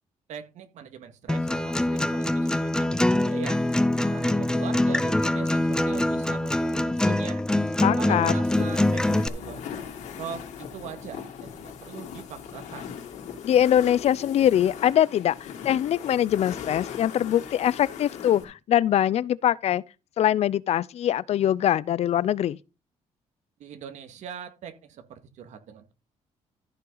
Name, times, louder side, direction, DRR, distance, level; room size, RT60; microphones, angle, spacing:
voice 1, 0.3-3.6 4.0-7.4 8.0-9.9 10.2-10.4 10.7-12.9 23.6-25.9, right 8 dB, 80° right, 1.9 m, -41 dB
Acoustic guitar, 1.3-9.3, left 1 dB, 5° left, 0.6 m, -24 dB
voice 2, 7.8-8.3 13.4-19.8 20.2-22.6, left 11 dB, 60° left, 0.5 m, -23 dB
sound 1, 8.4-18.4, left 8 dB, 85° left, 3.2 m, -39 dB
14.5 x 5.8 x 4.0 m
cardioid pair, 115°, 12 cm